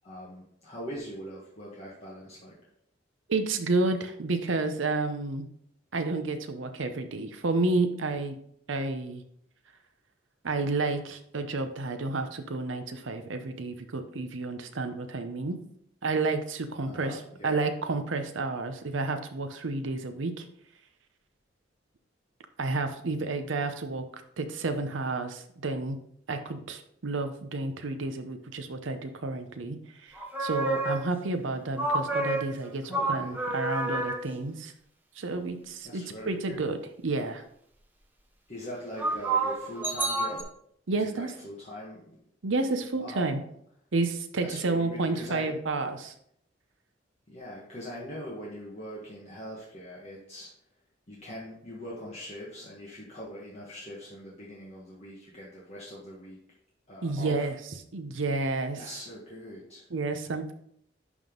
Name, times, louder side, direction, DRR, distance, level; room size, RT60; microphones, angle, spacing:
voice 1, 0.0-2.5 16.8-17.6 32.8-33.4 35.8-36.7 38.5-40.5 40.9-42.2 43.0-43.5 44.4-45.6 47.3-50.5 51.1-56.4 56.9-57.5 58.7-59.8, equal, 35° left, -6 dB, 1.5 m, -42 dB
voice 2, 3.3-5.5 5.9-8.4 8.7-9.2 10.4-15.6 16.0-17.2 17.4-20.4 22.6-24.0 24.4-26.0 26.3-29.8 30.0-34.7 35.2-36.8 37.0-37.4 40.9-41.3 42.4-43.4 43.9-46.1 57.0-57.5 57.9-58.8 59.9-60.5, right 3 dB, 80° right, 7 dB, 0.7 m, -30 dB
sound 1, 30.2-31.3 31.8-34.3 39.0-40.4, right 2 dB, 10° right, 0.7 m, -29 dB
11.0 x 3.7 x 3.8 m, 0.69 s
head